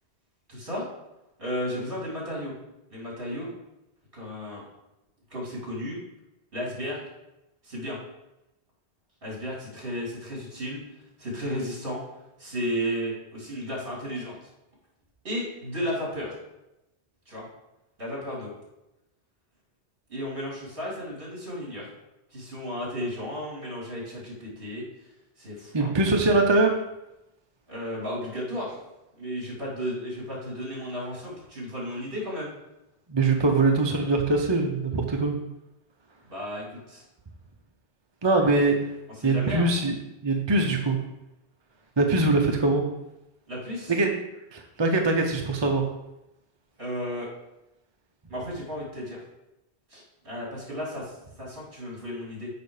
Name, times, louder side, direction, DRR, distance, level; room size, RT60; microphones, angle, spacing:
voice 1, 0.5-0.9 1.4-2.5 2.9-3.5 4.1-4.6 5.3-6.0 6.5-7.0 7.6-8.0 9.2-10.8 11.2-12.0 12.4-14.3 15.2-16.3 17.3-17.5 18.0-18.5 20.1-21.9 22.3-24.8 25.4-25.9 27.7-28.8 29.2-32.5 36.3-37.0 39.2-39.7 43.5-43.9 46.8-47.3 48.3-49.2 49.9-52.5, equal, 55° right, -4 dB, 3.3 m, -33 dB
voice 2, 25.7-26.7 33.1-35.4 38.2-38.8 39.2-41.0 42.0-42.8 43.9-44.1 44.5-45.9, right 2 dB, 30° right, 2 dB, 0.7 m, -22 dB
6.8 x 5.6 x 4.8 m, 0.92 s
omnidirectional pair, 1.1 m